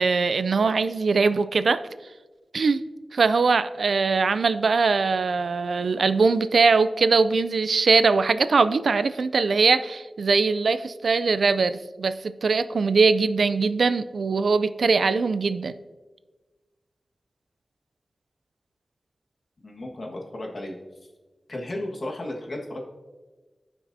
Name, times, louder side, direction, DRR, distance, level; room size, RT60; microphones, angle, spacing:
voice 1, 0.0-1.8 2.5-2.8 3.1-15.7, right 4 dB, 85° right, 13 dB, 0.3 m, -21 dB
voice 2, 19.6-20.7 21.5-22.8, left 1 dB, 55° left, 0 dB, 1.5 m, -34 dB
15.0 x 5.9 x 2.7 m, 1.3 s
wide cardioid pair, 95°, 0 cm